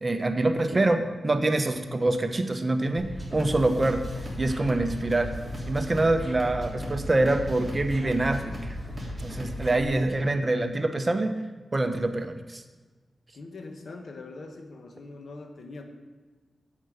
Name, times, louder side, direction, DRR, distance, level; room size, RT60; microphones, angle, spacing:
voice 1, 0.0-4.1 4.4-5.3 5.7-8.8 9.2-11.4 11.7-12.6, right 2 dB, 30° right, 7 dB, 0.9 m, -25 dB
sound 1, 3.0-9.8, left 1 dB, 5° right, 3.4 m, -36 dB
voice 2, 13.3-15.8, left 3 dB, 70° left, 4 dB, 1.3 m, -43 dB
8.8 x 7.9 x 5.1 m, 1.3 s
cardioid pair, 70°, 0 cm